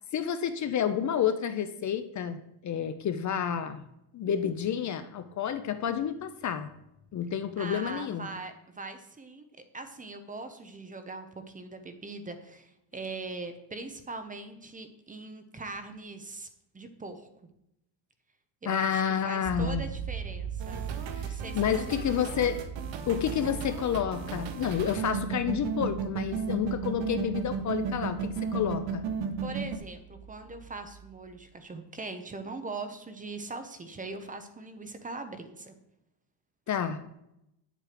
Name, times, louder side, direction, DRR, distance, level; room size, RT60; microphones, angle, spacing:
voice 1, 0.1-3.8 4.1-6.7 7.1-8.3 18.7-19.9 21.2-22.6 23.1-29.0 36.7-37.0, left 8 dB, 40° left, 10 dB, 0.7 m, -30 dB
voice 2, 7.6-9.4 9.7-16.5 16.7-17.3 18.6-20.9 21.2-21.6 21.9-22.4 29.4-35.7, right 3 dB, 15° right, 8 dB, 0.9 m, -41 dB
sound 1, 19.4-31.4, right 7 dB, 50° right, 4.7 m, -41 dB
sound 2, 20.6-29.8, right 6 dB, 70° right, 1.5 m, -34 dB
9.5 x 7.6 x 5.1 m, 0.83 s
cardioid pair, 150°, 46 cm